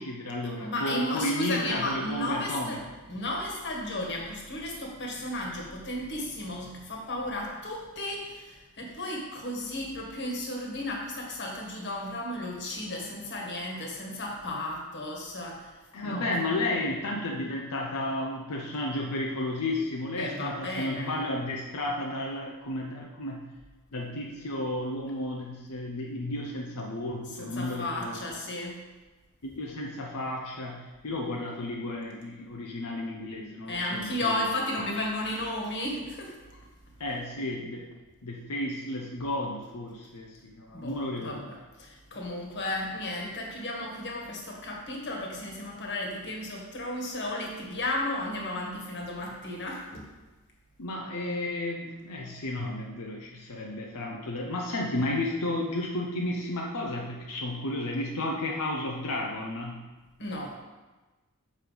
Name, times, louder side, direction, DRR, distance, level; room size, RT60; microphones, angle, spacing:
voice 1, 0.0-2.8 15.9-23.5 23.9-28.4 29.4-34.5 34.8-34.9 37.0-37.9 38.2-41.4 50.8-59.9, left 1 dB, 85° left, -1 dB, 0.8 m, -33 dB
voice 2, 0.6-2.8 3.1-15.8 16.0-16.4 20.2-21.2 27.4-28.8 33.7-36.6 40.7-50.1 60.2-60.6, left 1 dB, 50° left, -1 dB, 1.6 m, -34 dB
6.4 x 5.5 x 5.1 m, 1.2 s
head